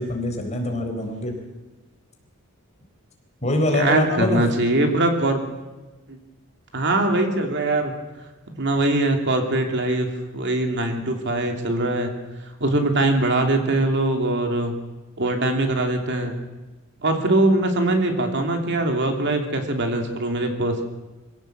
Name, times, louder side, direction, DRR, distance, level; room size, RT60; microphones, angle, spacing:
voice 1, 0.0-1.3 3.4-4.4, left 1 dB, 30° left, 3 dB, 4.0 m, -24 dB
voice 2, 3.7-5.4 6.1-6.2 6.7-7.9 8.6-12.1 12.6-14.8 15.2-16.4 17.0-20.8, right 2 dB, 55° right, 4 dB, 2.9 m, -22 dB
24.0 x 16.0 x 7.7 m, 1.2 s
head